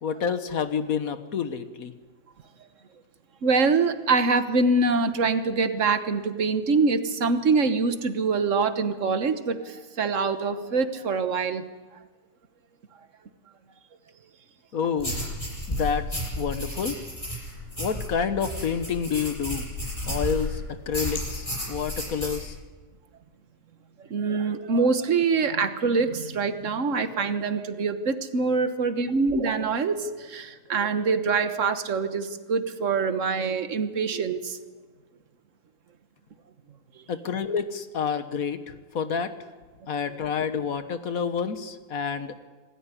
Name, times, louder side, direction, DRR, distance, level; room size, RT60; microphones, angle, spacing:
voice 1, 0.0-1.9 14.7-15.2 15.7-17.0 17.8-19.7 20.1-22.6 37.1-39.3 39.9-42.4, left 6 dB, 60° left, 10 dB, 1.5 m, -29 dB
voice 2, 3.4-11.7 24.0-34.6 40.1-40.2, right 4 dB, 50° right, 10 dB, 1.5 m, -24 dB
sound 1, 15.0-20.5 20.9-22.4, left 1 dB, 20° left, 8.3 m, -32 dB
26.5 x 14.0 x 9.8 m, 1.3 s
omnidirectional pair, 1.7 m